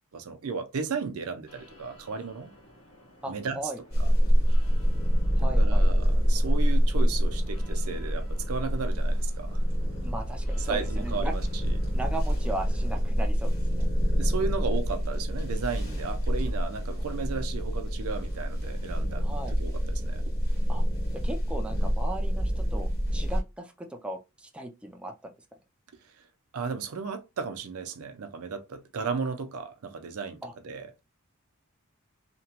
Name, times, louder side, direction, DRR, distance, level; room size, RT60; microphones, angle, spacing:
voice 1, 0.1-2.5 3.3-3.6 5.6-9.6 10.6-11.7 14.1-20.2 26.5-31.0, right 5 dB, 80° right, 0.5 m, -35 dB
sound 1, 1.4-13.1, left 1 dB, 80° left, 1.2 m, -54 dB
voice 2, 3.2-3.8 5.4-5.9 10.0-11.3 11.9-13.9 19.2-19.6 20.7-20.8 21.1-25.3 30.4-30.5, right 1 dB, 5° right, 0.3 m, -37 dB
sound 2, 3.9-23.4, equal, 45° left, 1.5 m, -26 dB
2.9 x 2.2 x 2.8 m
head